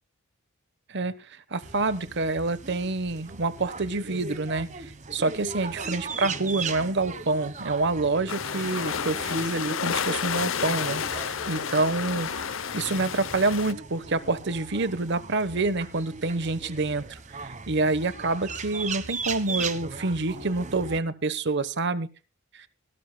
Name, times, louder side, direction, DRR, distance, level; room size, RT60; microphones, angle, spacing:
voice 1, 1.5-12.3 12.7-22.1 22.5-22.7, right 3 dB, 60° right, 15 dB, 1.1 m, -27 dB
zoo birdmonkeypeople, 1.6-21.0, right 4 dB, 35° right, 1.3 m, -38 dB
sound 1, 8.3-13.7, left 7 dB, 70° left, 0.7 m, -31 dB
18.5 x 17.5 x 2.3 m, 0.32 s
head